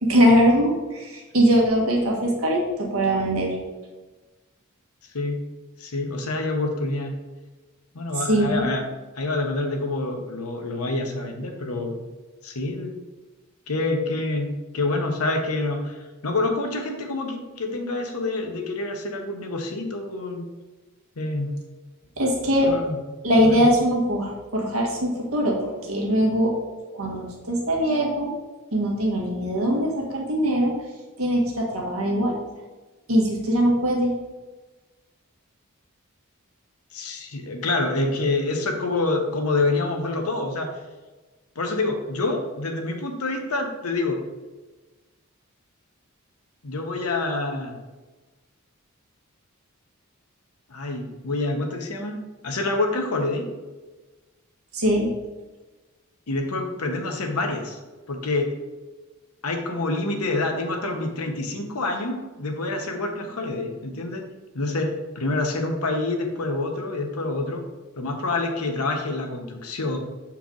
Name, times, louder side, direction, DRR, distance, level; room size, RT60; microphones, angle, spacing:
voice 1, 0.0-3.5 8.2-8.6 22.2-22.7 23.2-26.5 26.9-28.3 28.7-30.7 31.2-32.3 33.1-34.1 54.7-55.1, equal, 70° right, -1 dB, 1.7 m, -21 dB
voice 2, 5.8-7.1 7.9-8.8 9.2-12.0 12.4-12.9 13.7-20.5 21.2-21.5 22.6-23.0 23.4-23.7 36.9-40.7 41.6-44.2 46.6-47.7 50.7-52.2 52.4-53.4 56.3-57.8 58.1-58.5 59.4-64.2 64.5-67.6 68.0-70.0, left 2 dB, 90° left, 3 dB, 1.1 m, -27 dB
7.2 x 4.6 x 3.9 m, 1.2 s
head